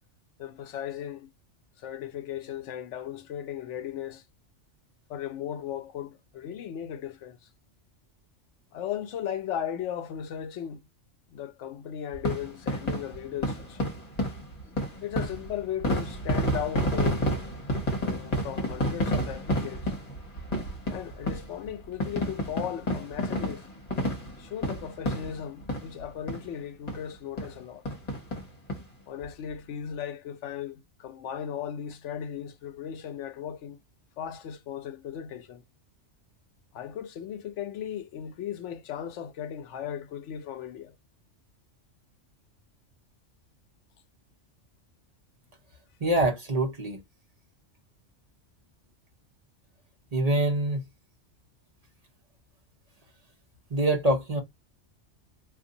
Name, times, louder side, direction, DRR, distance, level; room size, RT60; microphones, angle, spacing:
voice 1, 0.4-1.3 1.8-4.2 5.1-7.4 8.7-10.8 11.3-13.9 15.0-17.3 18.0-19.9 20.9-23.7 24.4-27.8 29.1-33.8 34.2-35.6 36.7-40.9, left 9 dB, 75° left, 0.9 m, -36 dB
sound 1, 12.1-26.0 26.3-26.4 26.9-27.0 27.4-27.5 27.8-28.8 29.2-29.3 29.5-29.6, equal, 35° left, 1.2 m, -30 dB
voice 2, 46.0-47.0 50.1-50.8 53.7-54.4, right 1 dB, 35° right, 0.8 m, -25 dB
2.6 x 2.6 x 3.8 m
omnidirectional pair, 1.2 m